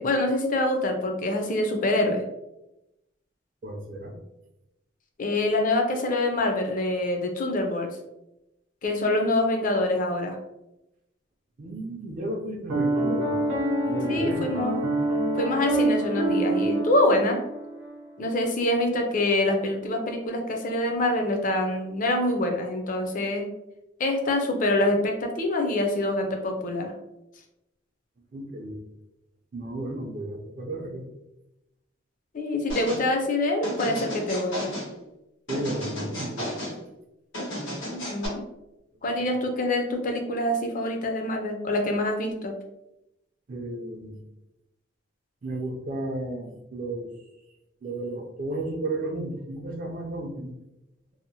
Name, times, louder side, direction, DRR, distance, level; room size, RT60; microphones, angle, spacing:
voice 1, 0.0-2.2 5.2-7.9 8.8-10.4 14.1-14.8 15.4-17.4 18.2-23.5 24.0-26.9 32.3-34.7 37.9-38.4 39.0-42.5, left 1 dB, 45° left, 4 dB, 0.4 m, -25 dB
voice 2, 3.6-4.1 11.6-13.4 13.9-14.6 28.3-28.8 29.5-31.0 35.5-36.5 43.5-44.2 45.4-47.1 47.8-50.6, right 1 dB, 45° right, 2 dB, 0.4 m, -33 dB
Piano, 12.7-18.0, right 2 dB, 90° right, 0.6 m, -26 dB
sound 1, 32.7-33.0 33.6-34.9 35.5-36.8 37.3-38.3, equal, 85° left, 1.2 m, -33 dB
2.7 x 2.0 x 2.7 m, 0.91 s
head